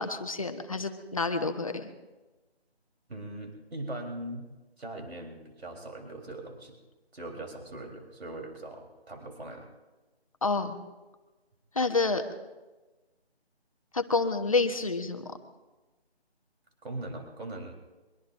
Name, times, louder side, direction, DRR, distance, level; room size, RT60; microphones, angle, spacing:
voice 1, 0.0-1.9 10.4-10.8 11.7-12.2 13.9-15.3, left 3 dB, 30° left, 7 dB, 1.1 m, -28 dB
voice 2, 3.1-4.5 4.8-6.8 7.1-9.7 16.8-17.7, right 1 dB, 70° right, 2 dB, 4.0 m, -40 dB
23.5 x 23.0 x 2.6 m, 1.2 s
figure-of-eight pair, 170°, 32 cm